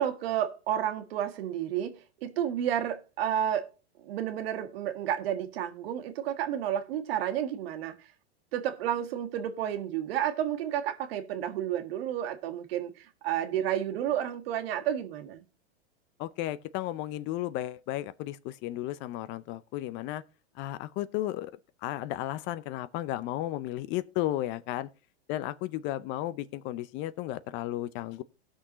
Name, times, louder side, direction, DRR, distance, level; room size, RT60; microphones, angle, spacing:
voice 1, 0.0-3.7 4.0-8.1 8.5-15.4, right 10 dB, 60° right, 1.6 m, -31 dB
voice 2, 16.2-20.2 20.6-21.5 21.8-24.9 25.3-28.2, left 14 dB, 35° left, 0.5 m, -34 dB
18.0 x 6.2 x 3.0 m
hypercardioid pair, 120°, 33 cm